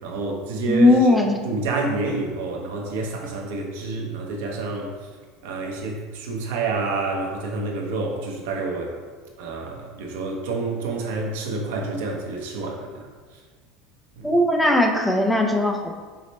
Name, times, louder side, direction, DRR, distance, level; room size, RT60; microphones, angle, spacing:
voice 1, 0.0-0.9 1.4-4.9 5.4-9.0 9.4-13.1 14.2-14.3, right 3 dB, 85° right, 0 dB, 0.7 m, -28 dB
voice 2, 0.7-1.4 14.2-15.9, left 1 dB, 5° left, 2 dB, 0.3 m, -18 dB
4.9 x 2.0 x 4.1 m, 1.5 s
cardioid pair, 160°, 0 cm